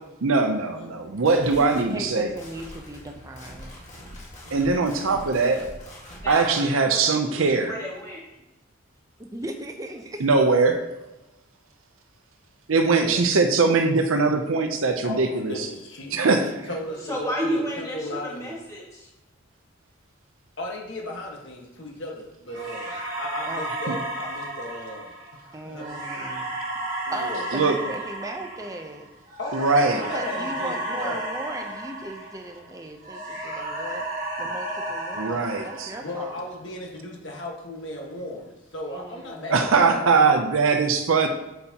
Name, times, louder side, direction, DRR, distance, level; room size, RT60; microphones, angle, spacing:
voice 1, 0.2-2.3 4.5-5.6 6.3-7.7 10.2-10.9 12.7-15.7 16.1-16.4 23.9-24.0 27.5-27.8 29.5-30.0 35.2-35.9 39.5-41.3, right 4 dB, 85° right, 5 dB, 0.7 m, -21 dB
sound 1, 1.0-6.7, left 1 dB, 35° left, 1.8 m, -44 dB
voice 2, 1.6-3.7 9.2-10.2 23.5-23.6 25.5-26.6 27.1-29.1 30.0-36.5 38.9-39.8, right 1 dB, 15° right, 4 dB, 0.7 m, -37 dB
voice 3, 4.4-4.9 12.7-13.2 15.0-18.6 20.6-25.1 25.4-25.8 27.1-27.5 29.4-31.2 35.9-40.2, left 1 dB, 60° left, -1 dB, 1.5 m, -36 dB
voice 4, 6.2-8.2 17.0-19.1, equal, 15° left, -4 dB, 1.9 m, -32 dB
sound 2, 22.5-32.7 33.0-36.4, right 1 dB, 40° right, 2.3 m, -33 dB
8.2 x 6.9 x 2.9 m, 0.98 s
head